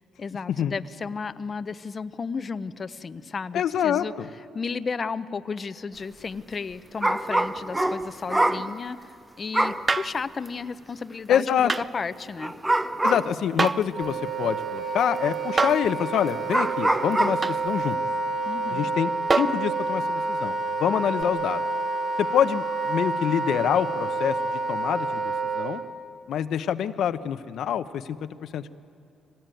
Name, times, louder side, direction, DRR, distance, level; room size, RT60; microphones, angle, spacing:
voice 1, 0.0-4.1 4.5-12.5 18.4-18.9, left 5 dB, 40° left, 14 dB, 0.7 m, -33 dB
voice 2, 3.5-4.3 11.3-11.7 13.0-18.0 18.7-21.6 22.2-25.8 26.3-28.7, left 9 dB, 70° left, 12 dB, 0.9 m, -26 dB
sound 1, 7.0-8.7 9.5-9.9 10.5-10.6 12.4-13.4 14.0-14.1 15.8-15.9 16.5-17.5, right 1 dB, 15° right, 0.9 m, -24 dB
sound 2, 9.9-10.2 11.7-11.9 13.6-13.9 15.6-15.9 17.4-17.6 19.3-19.7 21.2-21.3, right 3 dB, 30° right, 0.5 m, -25 dB
Wind instrument woodwind instrument, 13.9-25.8, right 3 dB, 50° right, 2.4 m, -29 dB
24.0 x 18.5 x 9.2 m, 2.6 s
cardioid pair, 90°, 0 cm